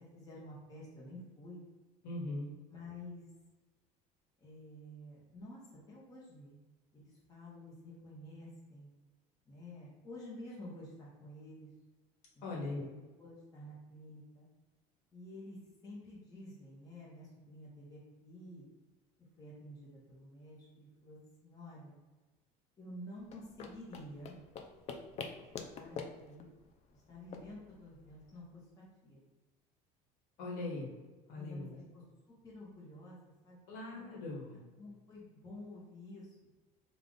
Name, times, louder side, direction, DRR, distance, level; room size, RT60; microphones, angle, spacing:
voice 1, 0.0-1.6 2.7-3.2 4.4-5.6 5.9-6.6 6.9-8.9 9.5-11.7 12.5-12.9 13.2-14.5 15.1-18.7 19.4-22.0 22.8-24.4 25.7-26.5 26.9-29.2 31.3-31.7 31.9-32.0 32.4-34.2 34.8-36.3, left 1 dB, 20° left, -6 dB, 0.9 m, -50 dB
voice 2, 2.0-2.5 12.4-12.8 30.4-30.9 31.3-31.8 33.7-34.6, left 2 dB, 70° left, -3 dB, 1.4 m, -40 dB
sound 1, 23.2-28.4, left 5 dB, 40° left, 0.4 m, -47 dB
3.6 x 2.4 x 3.7 m, 1.2 s
cardioid pair, 135°, 16 cm